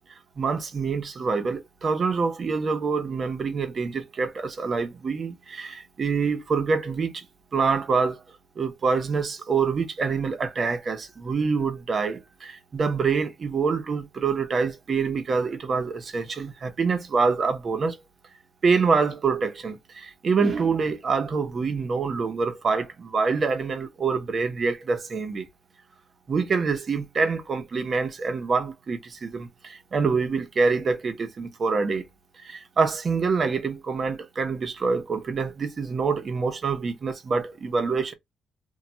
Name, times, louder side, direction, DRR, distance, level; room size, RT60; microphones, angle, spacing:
voice 1, 0.4-7.3 7.5-8.2 8.6-18.0 18.6-25.5 26.3-32.0 32.4-38.1, right 4 dB, 45° right, 0.7 m, -26 dB
2.3 x 2.1 x 3.8 m
cardioid pair, 90°, 0 cm